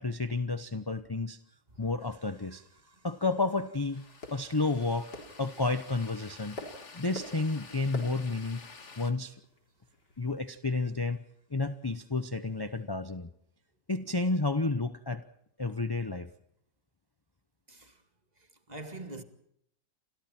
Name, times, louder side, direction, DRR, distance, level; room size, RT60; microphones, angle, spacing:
voice 1, 0.0-1.4 1.8-6.6 6.9-8.7 9.0-9.4 10.2-11.2 11.5-13.3 13.9-15.3 15.6-16.3, left 3 dB, 25° left, 0.5 m, -31 dB
sound 1, 1.7-10.5, left 1 dB, 80° left, 4.8 m, -50 dB
sound 2, 3.9-9.1, left 4 dB, 45° left, 2.0 m, -51 dB
voice 2, 17.7-18.0 18.7-19.2, right 2 dB, 25° right, 2.1 m, -43 dB
29.5 x 26.5 x 4.4 m
omnidirectional pair, 1.8 m